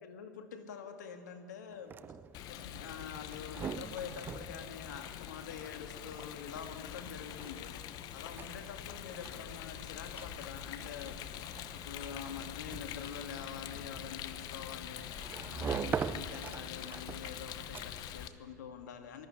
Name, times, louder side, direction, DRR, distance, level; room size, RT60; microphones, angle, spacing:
voice 1, 0.0-2.0 2.5-7.7 8.1-11.2 11.7-19.3, left 7 dB, 80° left, 7 dB, 2.1 m, -46 dB
sound 1, 1.7-18.2, right 7 dB, 20° right, 0.5 m, -44 dB
Rain, 2.3-18.3, left 11 dB, 45° left, 1.0 m, -44 dB
19.5 x 14.0 x 9.7 m, 2.6 s
hypercardioid pair, 110°, 9 cm